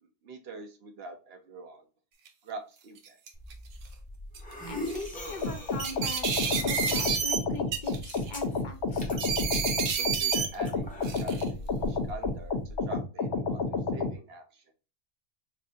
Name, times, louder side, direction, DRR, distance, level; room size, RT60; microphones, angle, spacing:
voice 1, 0.0-1.8 2.4-3.2 10.0-14.6, right 2 dB, 55° right, 6 dB, 0.9 m, -44 dB
sound 1, 2.3-2.4 3.0-3.5 4.3-4.5 4.9-5.1 5.8-7.4 7.7-8.3 9.2-10.5 11.0-11.5, right 7 dB, 80° right, 1.1 m, -30 dB
sound 2, 3.3-12.8, equal, 10° left, 0.8 m, -41 dB
voice 2, 4.7-9.1, left 3 dB, 45° left, 5 dB, 0.7 m, -41 dB
sound 3, 5.4-14.1, left 3 dB, 65° left, 1.1 m, -30 dB
4.3 x 2.6 x 2.6 m, 0.32 s
omnidirectional pair, 1.3 m